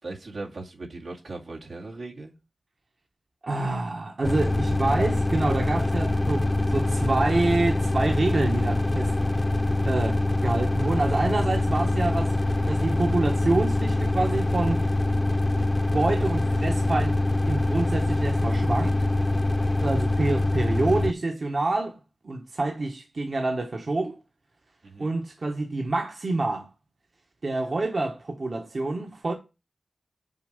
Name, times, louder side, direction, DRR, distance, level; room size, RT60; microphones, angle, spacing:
voice 1, 0.0-2.3 24.8-25.1, right 2 dB, 85° right, 2.1 m, -38 dB
voice 2, 3.4-9.1 9.8-14.9 15.9-19.0 19.8-22.0 22.2-24.2 25.0-26.7 27.4-29.3, right 2 dB, 60° right, 1.4 m, -27 dB
sound 1, 4.2-21.1, left 2 dB, 25° left, 0.4 m, -24 dB
7.1 x 4.5 x 6.6 m
wide cardioid pair, 80°, 0 cm